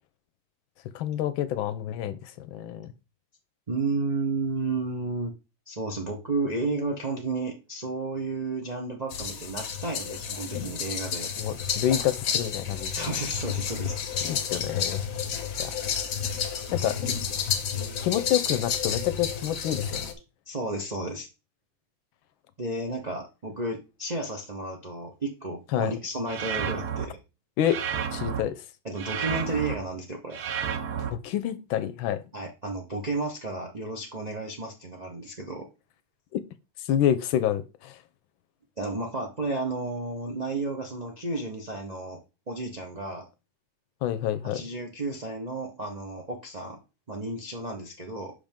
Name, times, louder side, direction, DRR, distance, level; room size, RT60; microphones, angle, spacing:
voice 1, 0.9-2.9 11.4-12.9 14.2-15.0 15.6-15.7 16.7-17.0 18.0-20.0 25.7-25.9 27.6-27.8 28.1-28.5 31.1-32.2 36.3-36.4 36.9-38.0 44.0-44.6, left 11 dB, 75° left, 1.3 m, -28 dB
voice 2, 3.7-5.3 5.7-11.3 12.9-14.3 17.0-17.1 17.7-18.0 20.5-21.3 22.6-27.2 28.8-30.4 32.3-35.7 38.8-42.2 42.5-43.3 44.4-46.8 47.1-48.3, right 2 dB, 45° right, 0.5 m, -32 dB
sound 1, 9.1-20.1, left 7 dB, 55° left, 1.0 m, -31 dB
Industrial Synth, 26.3-27.1 27.6-28.4 29.0-29.8 30.3-31.1, right 8 dB, 65° right, 0.9 m, -31 dB
5.9 x 5.1 x 3.5 m
omnidirectional pair, 2.3 m